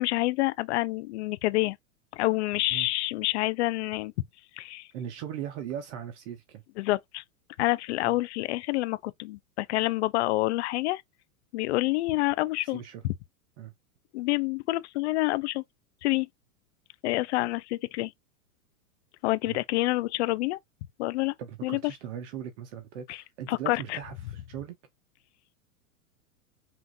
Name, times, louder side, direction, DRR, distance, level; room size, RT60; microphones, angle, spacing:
voice 1, 0.0-1.8 2.1-4.1 4.6-4.9 6.8-7.2 7.6-11.0 11.5-13.1 14.1-15.6 16.0-16.3 17.0-18.1 19.2-20.6 21.0-21.3 21.6-21.8 23.1-23.2 23.5-24.0, left 19 dB, 50° left, 0.5 m, -27 dB
voice 2, 4.9-6.6 8.1-8.2 12.6-13.0 13.6-13.7 19.4-19.6 21.4-24.7, right 9 dB, 50° right, 0.9 m, -39 dB
5.8 x 2.5 x 2.5 m
hypercardioid pair, 125°, 45 cm